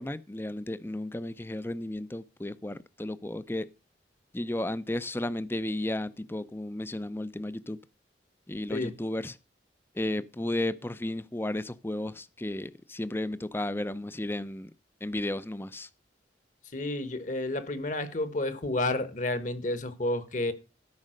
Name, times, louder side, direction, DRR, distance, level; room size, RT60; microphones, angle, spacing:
voice 1, 0.0-3.7 4.3-7.8 8.5-9.4 9.9-14.7 15.0-15.9, left 1 dB, 15° left, 0.5 m, -33 dB
voice 2, 16.7-20.5, left 2 dB, 45° left, 1.3 m, -30 dB
13.0 x 5.4 x 6.4 m
head